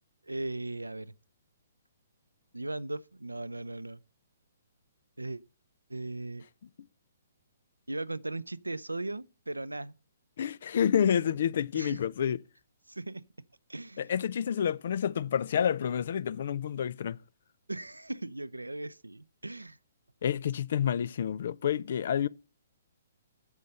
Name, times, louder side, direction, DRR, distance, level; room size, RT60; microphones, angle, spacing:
voice 1, 0.2-1.1 2.5-4.0 5.2-5.4 5.9-6.4 7.9-9.9 11.7-12.0 12.9-13.2 13.7-14.1 17.7-19.8, right 2 dB, 80° right, 0.5 m, -37 dB
voice 2, 10.4-12.4 14.0-17.2 20.2-22.3, left 8 dB, 50° left, 0.4 m, -29 dB
8.2 x 7.3 x 5.4 m
figure-of-eight pair, 125°, 0 cm